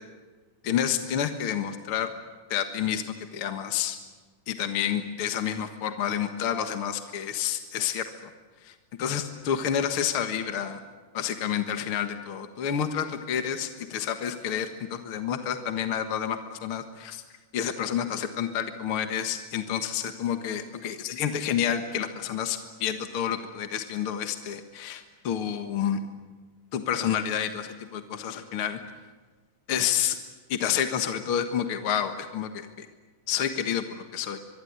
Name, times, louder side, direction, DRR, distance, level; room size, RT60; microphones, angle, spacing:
voice 1, 0.6-2.1 2.5-3.0 3.3-4.0 4.5-8.0 8.6-10.8 11.1-17.2 17.5-26.0 26.7-28.8 29.7-30.2 30.5-32.9 33.3-34.4, left 9 dB, 50° left, 7 dB, 2.0 m, -29 dB
24.5 x 23.5 x 9.6 m, 1.4 s
omnidirectional pair, 3.6 m